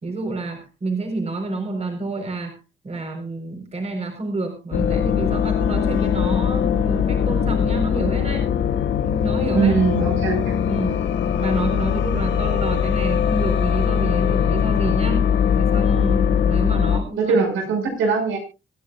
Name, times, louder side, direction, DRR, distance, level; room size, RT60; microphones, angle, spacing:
voice 1, 0.0-2.6 2.8-8.5 9.0-9.7 10.6-11.0 11.3-15.3 15.5-17.4 17.8-17.9, right 2 dB, 35° right, 3 dB, 4.3 m, -29 dB
sound 1, 4.7-17.0, left 8 dB, 70° left, 1.9 m, -21 dB
voice 2, 9.5-10.5 17.2-18.4, right 5 dB, 85° right, 4 dB, 6.1 m, -21 dB
25.5 x 10.5 x 2.4 m, 0.29 s
cardioid pair, 90°, 20 cm